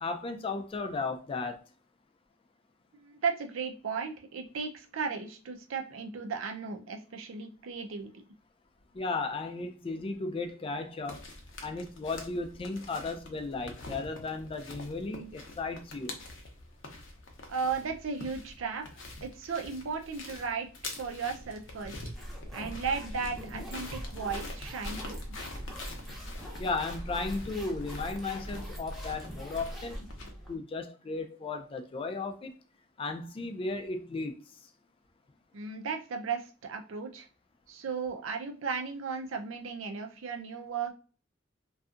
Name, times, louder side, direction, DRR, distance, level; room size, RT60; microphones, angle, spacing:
voice 1, 0.0-1.6 8.9-11.2 11.6-16.2 26.6-30.1 30.5-32.5 33.0-34.4, left 3 dB, 30° left, 0.3 m, -35 dB
voice 2, 3.0-8.2 17.5-20.7 20.9-22.0 22.5-25.2 35.5-37.3 37.7-40.9, right 5 dB, 80° right, 0.5 m, -35 dB
sound 1, 11.1-30.3, left 2 dB, 65° left, 0.6 m, -46 dB
sound 2, 21.8-30.5, equal, ahead, 0.7 m, -42 dB
2.7 x 2.3 x 2.4 m
head